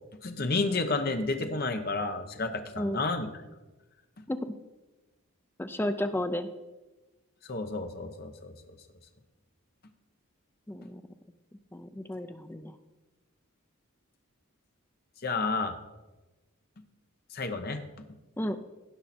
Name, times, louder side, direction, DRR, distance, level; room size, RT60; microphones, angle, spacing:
voice 1, 0.2-3.3 7.4-8.8 15.2-15.8 17.3-17.8, left 3 dB, 45° left, 6 dB, 0.9 m, -31 dB
voice 2, 5.6-6.5 10.7-11.0 11.7-12.7 18.4-18.6, left 1 dB, 10° left, 9 dB, 0.4 m, -32 dB
16.5 x 5.7 x 4.3 m, 1.1 s
head